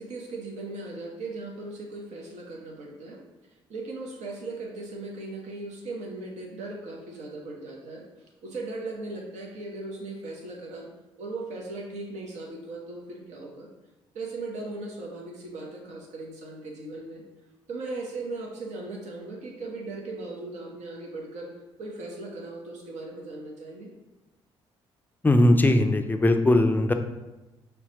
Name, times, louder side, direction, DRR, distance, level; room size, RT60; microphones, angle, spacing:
voice 1, 0.0-3.2 3.7-8.1 8.4-10.9 11.2-13.7 14.1-17.2 17.7-21.5 21.8-23.9, right 2 dB, 60° right, -1 dB, 1.0 m, -38 dB
voice 2, 25.2-26.9, left 1 dB, 15° left, 6 dB, 0.5 m, -19 dB
5.7 x 2.3 x 4.0 m, 1.1 s
hypercardioid pair, 45°, 14 cm